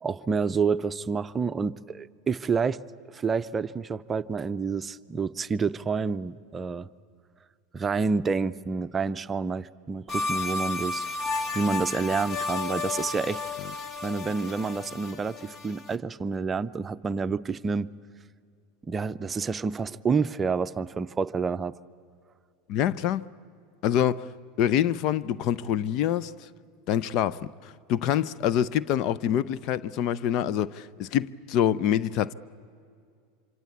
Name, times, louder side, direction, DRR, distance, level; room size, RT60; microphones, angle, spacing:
voice 1, 0.0-2.8 3.1-6.9 7.7-11.1 11.5-13.4 14.0-17.9 18.9-21.7, right 5 dB, 25° right, 0.6 m, -28 dB
sound 1, 10.1-16.0, left 3 dB, 35° left, 1.3 m, -32 dB
voice 2, 22.7-23.3 23.8-24.3 24.6-26.5 26.9-32.3, left 10 dB, 55° left, 0.6 m, -26 dB
26.0 x 25.5 x 8.5 m
hypercardioid pair, 95°, 0 cm